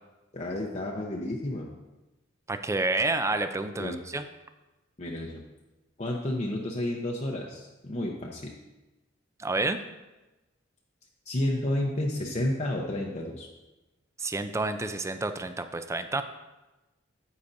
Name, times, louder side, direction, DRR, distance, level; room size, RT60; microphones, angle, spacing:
voice 1, 0.3-1.7 3.8-4.0 5.0-5.4 6.0-8.5 11.3-13.5, left 1 dB, 35° left, -2 dB, 0.7 m, -31 dB
voice 2, 2.5-4.2 9.4-9.8 14.2-16.2, right 2 dB, 15° right, 9 dB, 0.4 m, -29 dB
9.6 x 8.5 x 2.6 m, 1.1 s
head